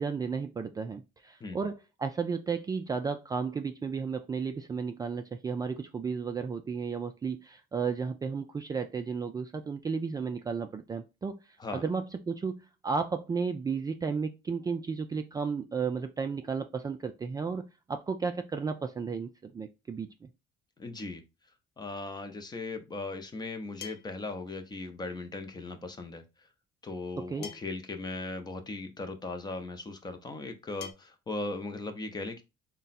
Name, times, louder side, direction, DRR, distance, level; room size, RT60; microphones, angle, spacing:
voice 1, 0.0-11.4 11.7-17.6 17.9-20.3 27.2-27.5, right 5 dB, 20° right, 0.3 m, -33 dB
voice 2, 20.8-21.2 21.8-26.2 26.8-32.4, left 3 dB, 25° left, 0.7 m, -38 dB
sound 1, 23.8-24.3 25.8-25.9 27.4-27.9 29.1-29.2 30.8-30.9, left 8 dB, 70° left, 0.6 m, -44 dB
3.6 x 2.2 x 4.1 m
cardioid pair, 110°, 17 cm